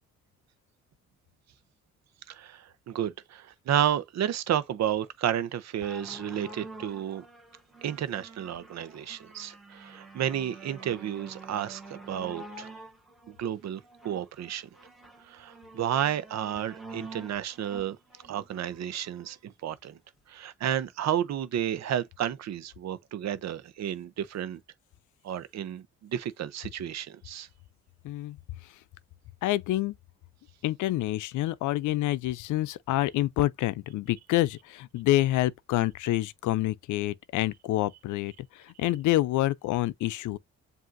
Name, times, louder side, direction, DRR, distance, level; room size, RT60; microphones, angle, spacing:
voice 1, 2.3-7.3 7.8-12.7 13.3-14.7 15.3-18.0 18.3-20.0 20.3-24.6 25.2-27.5, right 10 dB, 60° right, 0.7 m, -32 dB
sound 1, 5.8-19.4 20.1-20.2, right 2 dB, ahead, 1.7 m, -47 dB
voice 2, 28.0-28.4 28.6-28.7 29.4-29.9 30.6-40.4, left 15 dB, 80° left, 0.5 m, -27 dB
7.5 x 2.7 x 2.5 m
cardioid pair, 90°, 30 cm